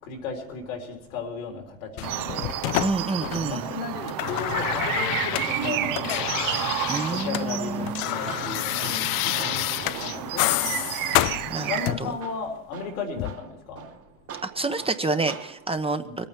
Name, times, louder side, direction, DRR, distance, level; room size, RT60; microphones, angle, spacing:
voice 1, 0.0-2.5 3.4-6.3 7.1-13.9 16.0-16.2, left 5 dB, 85° left, 2 dB, 3.6 m, -35 dB
sound 1, 2.0-3.7 3.9-7.5 7.7-12.2 13.2-13.3, left 20 dB, 60° left, 0.5 m, -28 dB
sound 2, 2.0-11.9, right 12 dB, 55° right, 0.9 m, -31 dB
voice 2, 2.8-3.7 6.9-8.0 11.5-11.7 12.0-12.1 14.4-16.3, right 3 dB, 15° right, 8 dB, 1.0 m, -28 dB
Tools, 7.7-15.7, right 8 dB, 35° right, 1.1 m, -43 dB
21.0 x 9.0 x 6.0 m, 0.84 s
hypercardioid pair, 80°, 40 cm